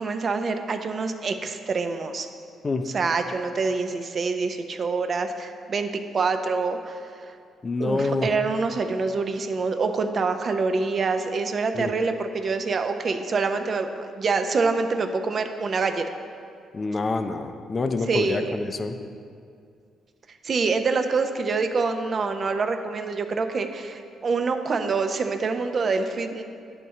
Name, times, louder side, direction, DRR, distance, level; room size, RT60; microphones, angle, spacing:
voice 1, 0.0-2.3 2.8-7.4 7.8-16.1 18.1-18.6 20.3-26.4, right 4 dB, 45° right, 7 dB, 0.5 m, -26 dB
voice 2, 7.6-8.3 11.7-11.9 16.7-19.0, left 3 dB, 35° left, 7 dB, 0.4 m, -27 dB
10.5 x 4.3 x 2.8 m, 2.3 s
cardioid pair, 90°, 0 cm